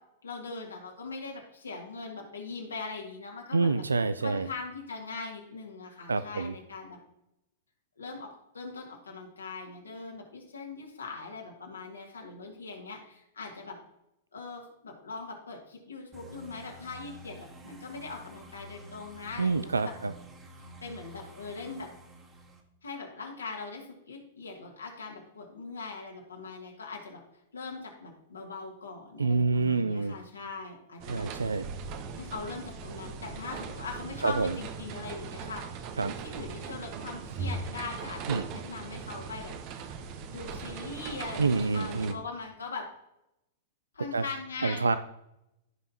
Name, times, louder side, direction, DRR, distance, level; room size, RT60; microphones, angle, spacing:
voice 1, 0.2-3.8 4.2-7.0 8.0-13.8 14.3-19.9 20.8-21.9 22.8-27.2 27.5-31.3 32.2-35.6 36.1-39.5 40.3-42.9 43.9-45.0, left 4 dB, 80° left, 0 dB, 2.3 m, -41 dB
voice 2, 3.5-4.5 6.1-6.5 19.4-20.1 29.2-30.2 31.1-31.7 34.2-34.6 36.0-36.1 38.3-38.5 41.4-42.2 44.1-44.2 44.6-45.0, right 4 dB, 80° right, 13 dB, 0.4 m, -27 dB
sound 1, 16.1-22.6, right 1 dB, 25° right, 1.9 m, -49 dB
sound 2, 31.0-42.1, right 5 dB, 40° right, 1.0 m, -39 dB
15.0 x 5.5 x 2.9 m, 0.84 s
figure-of-eight pair, 100°, 0 cm